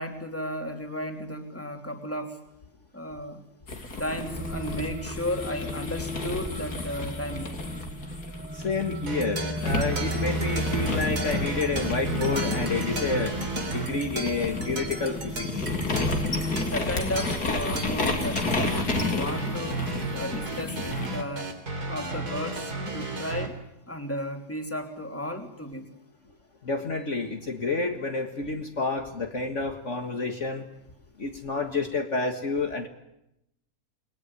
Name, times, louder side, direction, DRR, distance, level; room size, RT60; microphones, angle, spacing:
voice 1, 0.0-2.4 2.9-3.4 4.0-7.6 16.4-19.8 20.1-21.6 21.9-23.6 23.9-26.0, equal, 10° left, 5 dB, 2.9 m, -34 dB
sound 1, 3.7-9.1 9.6-21.2, left 3 dB, 85° left, 3.8 m, -32 dB
sound 2, 4.3-16.8, equal, 5° right, 1.7 m, -35 dB
voice 2, 8.5-15.7 26.6-30.7 31.2-32.9, left 3 dB, 50° left, 5 dB, 2.1 m, -29 dB
sound 3, 9.1-23.5, right 2 dB, 85° right, 3.7 m, -34 dB
28.5 x 21.0 x 9.7 m, 0.86 s
omnidirectional pair, 1.6 m